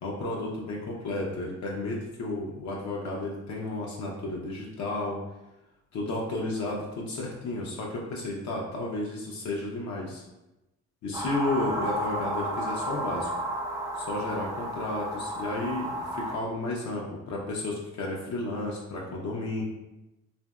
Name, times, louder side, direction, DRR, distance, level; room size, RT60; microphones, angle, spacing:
voice 1, 0.0-5.2 5.9-10.2 11.0-13.3 13.9-19.6, left 2 dB, 65° left, -2 dB, 0.6 m, -32 dB
sound 1, 11.1-16.4, right 1 dB, 10° right, 0.4 m, -32 dB
2.8 x 2.5 x 2.2 m, 0.96 s
cardioid pair, 90°, 30 cm